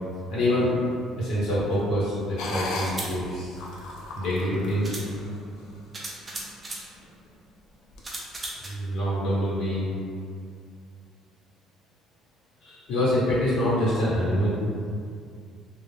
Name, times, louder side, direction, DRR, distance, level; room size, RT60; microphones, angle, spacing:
voice 1, 0.3-0.7 1.2-3.6 4.1-5.0 8.6-10.0 12.6-14.9, equal, 65° left, -9 dB, 1.2 m, -26 dB
sound 1, 1.7-1.8 2.7-3.1 4.3-4.4 4.8-5.1 5.9-6.9 8.0-8.7, right 2 dB, 20° right, 0.3 m, -36 dB
sound 2, 2.4-5.8 6.3-6.5 7.0-7.3 7.9-8.0, left 2 dB, 80° left, 0.4 m, -36 dB
2.4 x 2.0 x 3.2 m, 2.3 s
cardioid pair, 170°, 0 cm